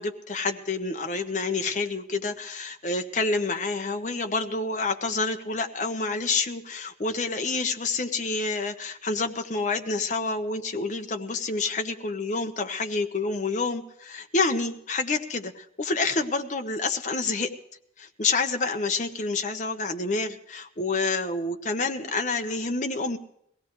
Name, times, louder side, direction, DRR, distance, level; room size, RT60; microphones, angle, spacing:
voice 1, 0.0-17.5 18.0-23.2, left 3 dB, 45° left, 5 dB, 1.2 m, -28 dB
22.0 x 17.0 x 3.3 m, 0.73 s
head